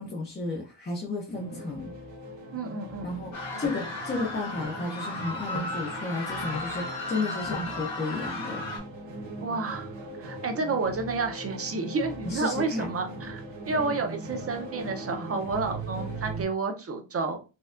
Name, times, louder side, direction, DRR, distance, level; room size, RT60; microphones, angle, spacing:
voice 1, 0.0-1.9 3.0-8.6 12.2-12.9 13.7-13.8, left 2 dB, 20° left, 0.5 m, -33 dB
sound 1, 1.3-16.4, right 2 dB, 60° right, 1.0 m, -40 dB
voice 2, 2.5-3.1 9.4-9.9 10.2-17.4, right 4 dB, 30° right, 0.6 m, -30 dB
sound 2, 3.3-8.8, left 2 dB, 65° left, 1.9 m, -35 dB
sound 3, 3.6-3.8 4.6-4.7 5.5-5.8 6.5-6.7 7.5-7.7, left 3 dB, 85° left, 1.2 m, -37 dB
4.3 x 2.3 x 2.4 m
wide cardioid pair, 155°, 50 cm